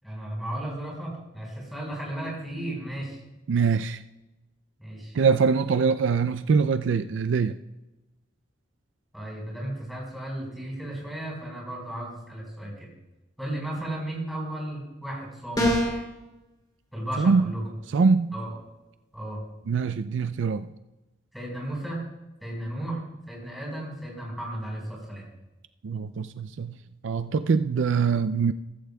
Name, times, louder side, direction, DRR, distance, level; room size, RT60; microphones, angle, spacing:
voice 1, 0.0-3.2 4.8-5.2 9.1-12.9 13.4-15.8 16.9-17.7 18.3-18.5 19.1-19.4 21.3-22.0 22.4-23.0 23.3-25.2, right 1 dB, ahead, -3 dB, 4.7 m, -34 dB
voice 2, 3.5-4.0 5.1-7.5 17.2-17.5 17.9-18.3 19.7-20.7 25.8-26.7 27.0-28.5, right 5 dB, 65° right, 12 dB, 0.4 m, -23 dB
sound 1, 15.6-16.1, left 1 dB, 20° left, 3.0 m, -23 dB
15.0 x 15.0 x 2.3 m, 1.0 s
head